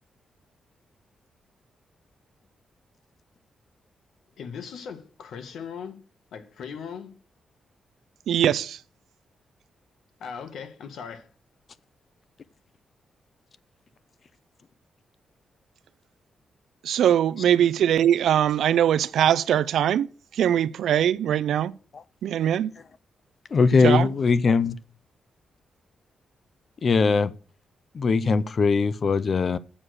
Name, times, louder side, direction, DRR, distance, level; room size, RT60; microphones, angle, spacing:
voice 1, 4.4-6.0 6.3-7.1 10.2-11.3, left 6 dB, 80° left, 1.8 m, -38 dB
voice 2, 8.3-8.8 16.8-20.1 20.4-21.7 22.2-22.7 23.8-24.1, right 10 dB, 85° right, 0.4 m, -21 dB
voice 3, 23.5-24.8 26.8-27.3 27.9-29.6, left 4 dB, 40° left, 0.6 m, -21 dB
7.4 x 6.4 x 6.5 m
wide cardioid pair, 135°, 0 cm